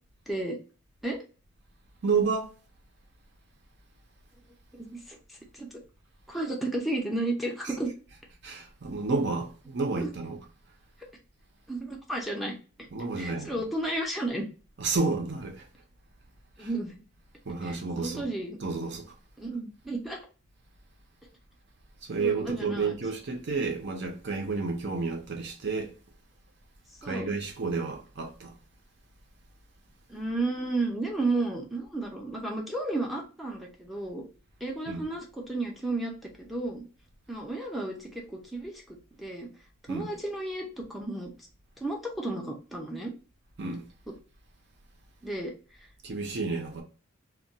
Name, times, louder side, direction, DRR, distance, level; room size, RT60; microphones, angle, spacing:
voice 1, 0.3-0.6 1.0-1.2 4.7-5.7 6.3-7.9 9.9-10.1 11.7-12.9 13.2-14.5 16.6-17.0 17.6-18.6 19.4-20.3 22.2-22.9 27.0-27.3 30.1-34.2 34.6-36.1 36.4-36.8 37.3-39.5 39.9-41.3 41.8-43.1 44.1-44.2 45.2-45.5 45.8-45.9, right 2 dB, ahead, 0.5 m, -33 dB
voice 2, 2.0-2.5 8.4-10.4 12.9-13.5 14.8-15.6 16.6-16.7 17.5-18.2 18.6-19.1 22.1-25.9 27.0-28.5 34.9-35.0 39.9-40.1 43.6-43.8 46.0-46.8, right 4 dB, 50° right, 0.6 m, -30 dB
2.2 x 2.2 x 3.8 m
head